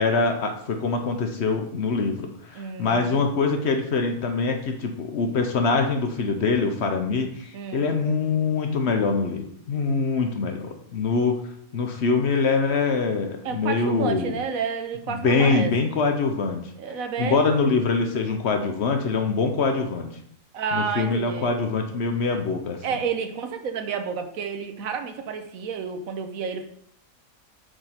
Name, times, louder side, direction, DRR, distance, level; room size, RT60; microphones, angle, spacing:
voice 1, 0.0-11.4 11.7-14.3 15.1-16.6 17.2-20.1 20.7-22.8, left 4 dB, 55° left, 5 dB, 0.9 m, -24 dB
voice 2, 2.5-3.5 7.5-7.8 13.4-15.7 16.8-17.6 20.5-21.5 22.8-26.6, right 6 dB, 75° right, 7 dB, 1.2 m, -30 dB
7.9 x 3.6 x 4.2 m, 0.68 s
omnidirectional pair, 1.5 m